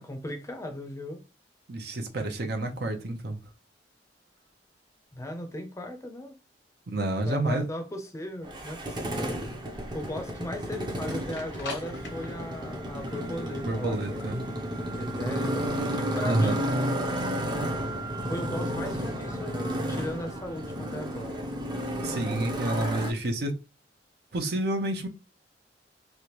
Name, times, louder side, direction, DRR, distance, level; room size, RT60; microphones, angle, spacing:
voice 1, 0.1-1.2 5.1-6.4 7.3-9.3 9.9-14.3 15.0-15.6 15.9-16.7 18.3-21.4, left 1 dB, 15° left, 0.6 m, -37 dB
voice 2, 1.7-3.4 6.9-7.6 13.6-14.4 16.2-16.6 22.0-23.6 24.3-25.1, right 2 dB, 65° right, 0.7 m, -29 dB
Motorcycle, 8.4-23.1, equal, 25° right, 0.6 m, -32 dB
sound 1, 9.6-22.8, right 3 dB, 85° left, 1.0 m, -44 dB
3.3 x 2.5 x 2.9 m
head